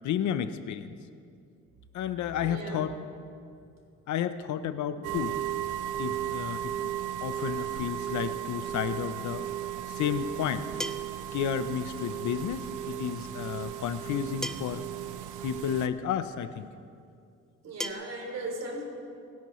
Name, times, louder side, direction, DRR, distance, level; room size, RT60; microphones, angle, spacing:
voice 1, 0.0-0.9 1.9-2.9 4.1-5.4 6.0-6.9 7.2-9.5 9.9-10.7 11.3-14.8 15.4-16.7, left 9 dB, 70° left, 12 dB, 0.7 m, -32 dB
voice 2, 2.4-2.9 4.9-5.0 5.8-5.9 17.6-18.8, right 2 dB, 55° right, 1 dB, 3.4 m, -37 dB
sound 1, 5.0-15.9, right 11 dB, 90° right, 0.7 m, -35 dB
sound 2, 10.8-11.3 12.8-12.9 14.4-14.9 16.1-16.2 17.8-17.9, equal, ahead, 0.6 m, -36 dB
25.5 x 10.5 x 3.1 m, 2.4 s
cardioid pair, 90°, 30 cm